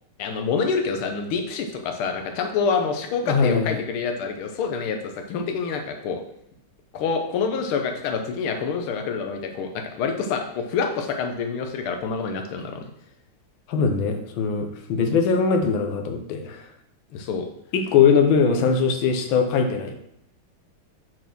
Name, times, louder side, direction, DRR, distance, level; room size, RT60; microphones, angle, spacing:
voice 1, 0.2-6.2 6.9-12.8 17.1-17.5, left 5 dB, 85° left, 5 dB, 1.7 m, -27 dB
voice 2, 3.2-3.8 13.7-16.7 17.7-20.0, left 5 dB, 70° left, 5 dB, 1.7 m, -21 dB
6.9 x 4.3 x 6.0 m, 0.74 s
omnidirectional pair, 2.3 m